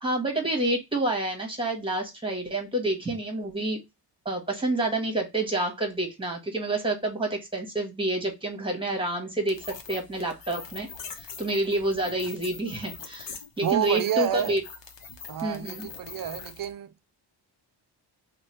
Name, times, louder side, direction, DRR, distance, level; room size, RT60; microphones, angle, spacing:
voice 1, 0.0-3.8 4.2-14.6 15.4-15.9, right 2 dB, 10° right, 1.1 m, -28 dB
sound 1, 9.5-16.7, left 5 dB, 80° left, 0.9 m, -43 dB
voice 2, 13.6-14.6 15.3-17.0, right 10 dB, 50° right, 0.5 m, -29 dB
3.1 x 2.3 x 4.3 m
wide cardioid pair, 140°, 43 cm